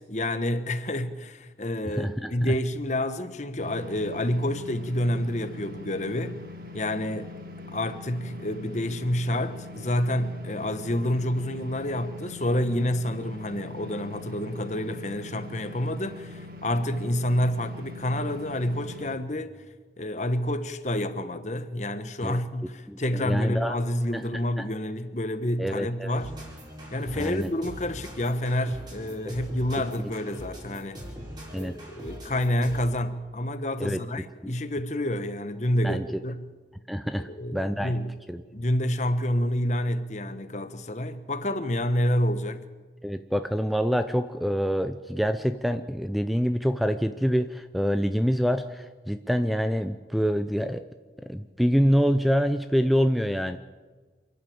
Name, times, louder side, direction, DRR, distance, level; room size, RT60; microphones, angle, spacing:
voice 1, 0.0-6.4 6.7-7.3 7.7-19.5 20.0-26.3 26.9-31.0 31.5-36.5 37.2-38.1 38.5-42.6, left 1 dB, 40° left, 1.1 m, -28 dB
voice 2, 1.9-2.5 22.2-22.4 22.9-23.8 24.1-24.2 25.6-26.2 27.1-27.5 31.5-31.7 33.8-34.0 34.4-34.5 35.8-36.0 36.9-37.9 38.3-38.4 43.0-50.8 51.2-53.6, equal, ahead, 0.5 m, -26 dB
sound 1, 3.6-19.2, left 2 dB, 50° right, 1.8 m, -42 dB
sound 2, 26.2-33.0, equal, 25° right, 5.3 m, -42 dB
28.0 x 11.0 x 8.6 m
head